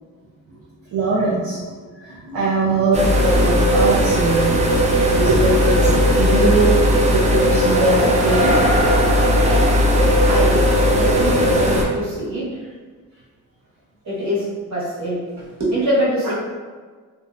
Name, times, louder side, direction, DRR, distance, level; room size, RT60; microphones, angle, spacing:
voice 1, 0.9-1.6 2.0-4.5 5.1-8.5, right 2 dB, 75° right, -6 dB, 0.6 m, -21 dB
sound 1, 2.9-11.8, equal, 20° right, 0.4 m, -16 dB
voice 2, 10.2-12.5 14.0-16.3, equal, 55° right, -8 dB, 1.2 m, -24 dB
2.6 x 2.1 x 2.4 m, 1.5 s
cardioid pair, 80°, 33 cm